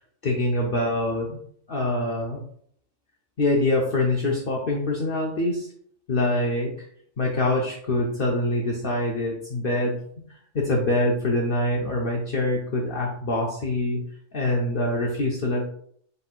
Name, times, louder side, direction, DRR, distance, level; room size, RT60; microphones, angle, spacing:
voice 1, 0.2-1.4 1.7-2.4 3.4-5.7 6.1-6.9 7.2-10.0 10.3-14.0 14.3-15.7, left 1 dB, 55° left, -2 dB, 0.8 m, -25 dB
5.5 x 4.0 x 2.4 m, 0.64 s
omnidirectional pair, 1.3 m